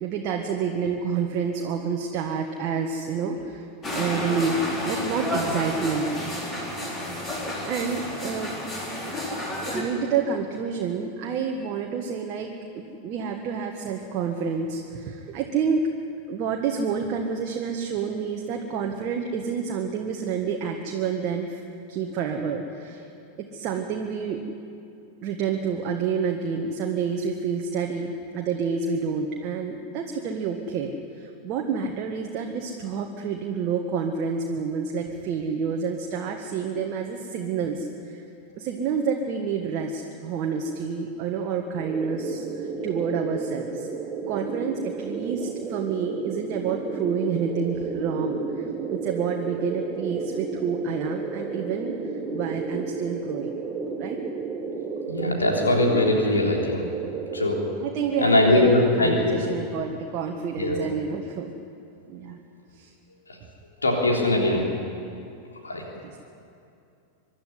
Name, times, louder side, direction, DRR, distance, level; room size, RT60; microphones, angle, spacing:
voice 1, 0.0-3.7 3.9-4.6 4.8-6.1 7.2-8.5 9.7-15.9 16.3-21.6 21.9-23.0 23.4-24.4 25.2-38.2 38.6-43.9 44.3-48.7 48.9-51.9 52.3-53.6 54.0-54.2 57.8-61.5 62.1-62.4 62.7-62.9 64.1-64.7 66.0-66.2, right 6 dB, 40° right, 1 dB, 1.6 m, -29 dB
sound 1, 3.8-9.8, left 1 dB, 20° left, 4.6 m, -31 dB
sound 2, 41.8-57.7, right 5 dB, 20° right, 1.5 m, -33 dB
voice 2, 55.1-56.8 57.3-57.6 58.2-59.4 60.6-60.8 63.8-64.6 65.6-65.8, left 2 dB, 75° left, 0 dB, 3.6 m, -21 dB
24.5 x 12.0 x 9.7 m, 2.6 s
figure-of-eight pair, 90°, 0 cm